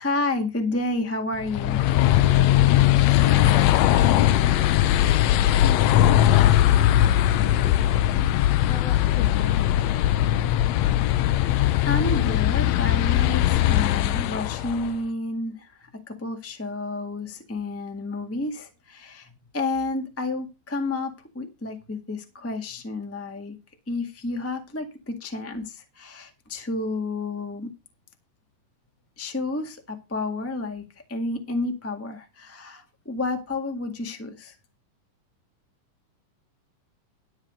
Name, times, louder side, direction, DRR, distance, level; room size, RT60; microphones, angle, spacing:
voice 1, 0.0-1.8 11.3-23.6 23.9-27.7 29.2-34.5, left 2 dB, 10° left, 0.7 m, -30 dB
sound 1, 1.4-14.9, left 13 dB, 85° left, 1.5 m, -20 dB
voice 2, 3.1-5.8 6.1-6.4 6.7-7.9 8.6-9.9, left 7 dB, 60° left, 2.2 m, -37 dB
12.0 x 6.4 x 5.2 m
omnidirectional pair, 3.9 m